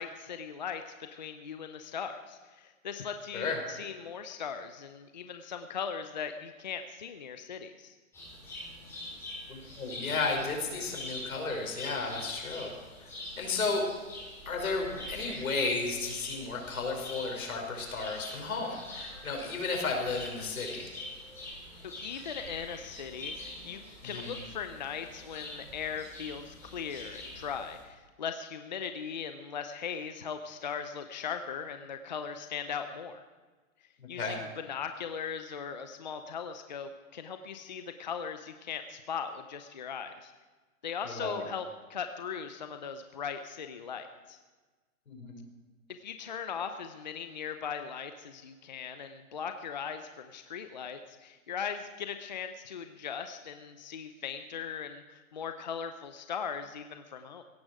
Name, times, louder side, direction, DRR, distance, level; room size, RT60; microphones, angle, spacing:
voice 1, 0.0-7.9 22.0-33.3 34.1-40.3 40.8-44.4 46.0-57.4, left 7 dB, 35° left, 8 dB, 0.6 m, -39 dB
sound 1, 8.1-27.8, left 1 dB, 5° left, 4.8 m, -45 dB
voice 2, 9.5-12.7 13.0-13.1 13.4-13.8 14.5-20.9 24.0-24.3 34.2-34.4 41.1-41.4 45.1-45.5, left 3 dB, 80° left, 1 dB, 5.3 m, -33 dB
17.0 x 14.0 x 4.8 m, 1.3 s
hypercardioid pair, 175°, 42 cm